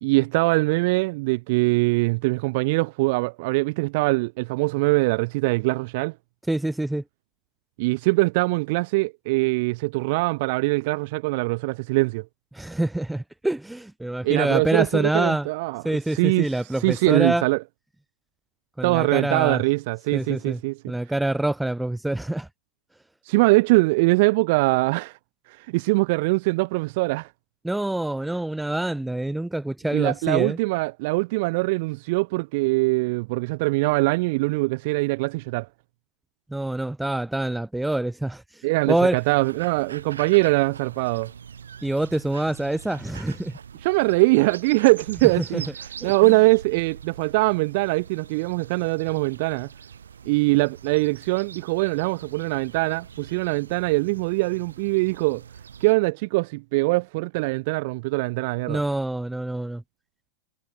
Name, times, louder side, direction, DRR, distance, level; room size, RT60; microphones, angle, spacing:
voice 1, 0.0-6.1 7.8-12.2 14.2-16.5 16.8-17.6 18.8-20.9 23.3-25.1 25.6-27.3 29.9-35.7 38.6-41.3 43.8-45.6 46.0-49.7 50.3-55.4 55.8-58.8, right 25 dB, 50° right, 0.9 m, -22 dB
voice 2, 6.5-7.0 12.5-15.5 15.8-17.4 18.8-19.6 20.1-20.6 20.9-22.5 27.6-30.6 36.5-38.4 38.9-39.2 41.8-43.6 45.5-45.6 46.0-46.3 58.7-59.8, right 1 dB, 5° right, 2.9 m, -26 dB
sound 1, 39.1-55.9, right 7 dB, 70° right, 4.1 m, -43 dB
figure-of-eight pair, 90°, 0 cm